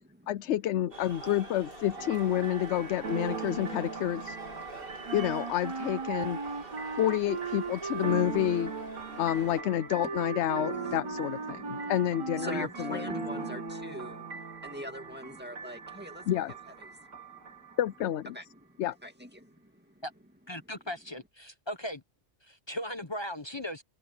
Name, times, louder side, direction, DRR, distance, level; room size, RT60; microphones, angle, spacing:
voice 1, 0.3-4.4 5.1-6.6 7.0-8.7 9.2-13.1 16.3-16.5 17.8-18.4 18.8-19.0, left 12 dB, 70° left, 0.9 m, -29 dB
sound 1, 0.9-9.6, right 4 dB, 50° right, 3.6 m, -44 dB
sound 2, 2.0-18.0, right 4 dB, 90° right, 2.9 m, -41 dB
Wind instrument woodwind instrument, 5.1-13.7, right 5 dB, 30° right, 0.6 m, -38 dB
voice 2, 10.6-17.8 18.3-20.0, right 1 dB, 10° right, 2.1 m, -44 dB
voice 3, 20.5-22.0 22.4-23.8, equal, 25° left, 1.0 m, -38 dB
omnidirectional pair, 1.3 m